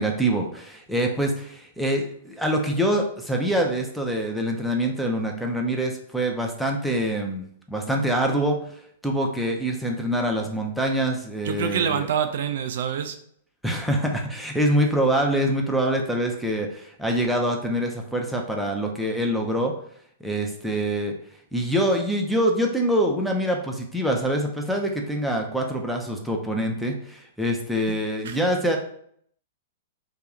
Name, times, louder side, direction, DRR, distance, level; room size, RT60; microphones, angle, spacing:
voice 1, 0.0-8.6 9.0-12.0 13.6-19.7 20.2-21.1 21.5-28.8, right 1 dB, ahead, 0 dB, 0.6 m, -25 dB
voice 2, 11.4-13.2 28.2-28.4, right 8 dB, 65° right, 8 dB, 0.3 m, -26 dB
2.9 x 2.4 x 3.6 m, 0.64 s
hypercardioid pair, 110°, 0 cm